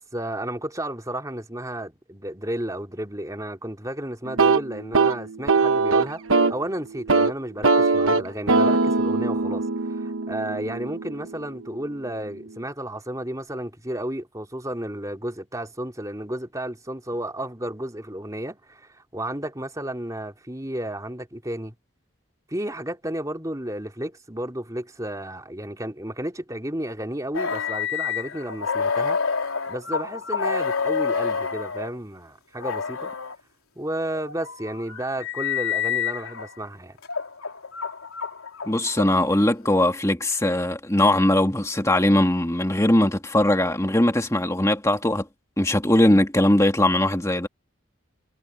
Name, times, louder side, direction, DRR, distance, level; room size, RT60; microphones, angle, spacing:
voice 1, 0.0-21.7 22.5-29.2 29.7-33.1 33.8-37.0, right 1 dB, 15° right, 3.7 m, -32 dB
sound 1, 4.3-6.6 6.9-7.3 7.6-11.5, right 3 dB, 70° right, 1.2 m, -21 dB
sound 2, 27.3-31.9 32.6-33.4 34.1-36.5 37.0-39.4, left 6 dB, 80° left, 3.7 m, -28 dB
voice 2, 38.7-45.3 45.6-47.5, left 1 dB, 15° left, 2.1 m, -20 dB
head